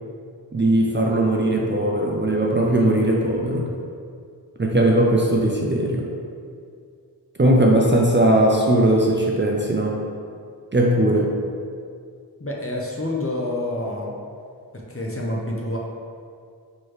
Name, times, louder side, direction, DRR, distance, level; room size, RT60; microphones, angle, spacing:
voice 1, 0.5-3.7 4.6-6.1 7.4-10.0 10.7-11.4, right 1 dB, 30° right, -1 dB, 0.4 m, -19 dB
voice 2, 12.4-14.1 14.7-15.8, left 1 dB, 35° left, -2 dB, 0.7 m, -28 dB
4.4 x 3.0 x 3.1 m, 2.2 s
wide cardioid pair, 45°, 39 cm